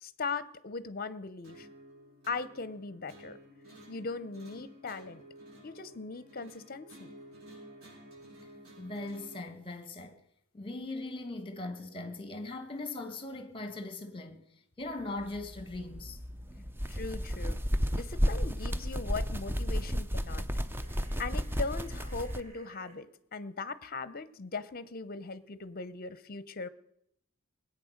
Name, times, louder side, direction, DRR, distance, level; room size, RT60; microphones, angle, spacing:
voice 1, 0.0-1.7 2.2-3.4 3.9-5.2 5.6-7.1 16.9-17.6 17.9-20.5 21.2-26.7, left 4 dB, 45° left, 0.7 m, -39 dB
sound 1, 1.4-9.4, equal, 75° right, 5.9 m, -52 dB
voice 2, 8.8-10.2 10.5-14.5 14.8-16.2, left 2 dB, 25° left, 1.5 m, -40 dB
sound 2, 15.2-22.4, equal, 10° right, 0.6 m, -33 dB
sound 3, 20.7-23.0, right 3 dB, 30° right, 2.7 m, -56 dB
20.0 x 8.5 x 6.5 m
head